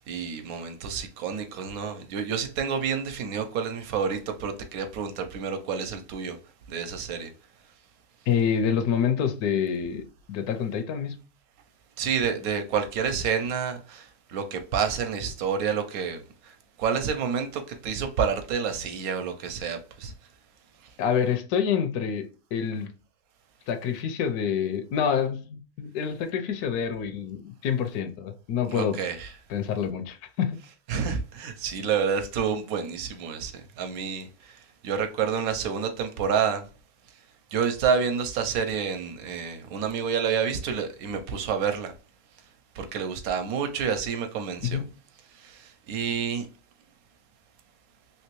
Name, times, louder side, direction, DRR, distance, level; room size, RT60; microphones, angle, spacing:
voice 1, 0.1-6.4 6.7-7.3 12.0-20.1 28.7-29.3 30.9-36.6 37.5-41.9 42.7-44.8 45.3-46.5, right 6 dB, 70° right, 1.1 m, -29 dB
voice 2, 8.3-11.2 21.0-22.9 23.7-29.0 29.5-30.6 44.7-44.9, left 7 dB, 80° left, 1.1 m, -27 dB
3.3 x 2.9 x 3.0 m
omnidirectional pair, 1.6 m